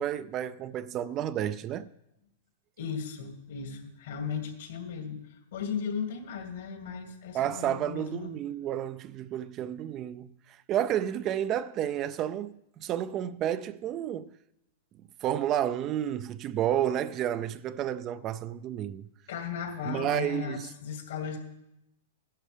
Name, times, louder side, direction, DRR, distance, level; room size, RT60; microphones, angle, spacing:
voice 1, 0.0-1.9 7.3-14.3 15.2-19.1 19.8-20.7, right 11 dB, 30° right, 0.4 m, -31 dB
voice 2, 2.8-8.3 19.3-21.4, left 6 dB, 75° left, 2.3 m, -36 dB
15.5 x 11.5 x 3.3 m
hypercardioid pair, 140°, 0 cm